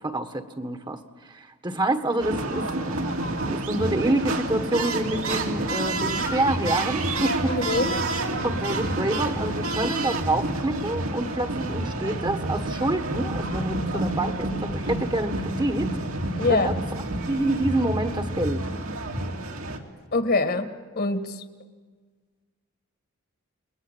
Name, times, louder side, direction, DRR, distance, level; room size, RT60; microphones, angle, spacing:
voice 1, 0.0-2.9 3.5-7.5 8.4-15.9 16.5-16.7 17.3-18.7, right 2 dB, 20° right, 8 dB, 1.5 m, -27 dB
sound 1, 2.2-19.8, right 2 dB, 65° right, 2.7 m, -29 dB
voice 2, 7.5-7.9 16.4-16.7 20.1-20.7 21.0-21.4, left 3 dB, 45° left, 9 dB, 1.7 m, -23 dB
29.5 x 21.5 x 9.1 m, 1.5 s
head